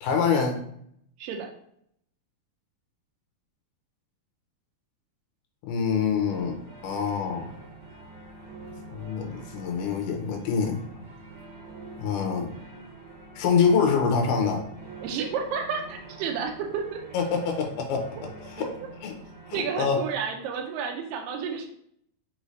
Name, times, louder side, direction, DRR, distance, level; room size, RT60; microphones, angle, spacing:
voice 1, 0.0-0.6 5.6-7.5 8.9-10.8 12.0-12.5 13.4-14.6 17.1-18.3 18.6-18.7 19.0-19.1 19.5-20.0, left 6 dB, 80° left, 2 dB, 2.2 m, -25 dB
voice 2, 1.2-1.5 15.0-17.0 18.6-18.7 19.5-21.7, right 6 dB, 85° right, 1 dB, 2.2 m, -31 dB
sound 1, 6.2-19.7, right 2 dB, 65° right, 2.8 m, -45 dB
5.5 x 2.7 x 3.1 m, 0.68 s
omnidirectional pair, 3.9 m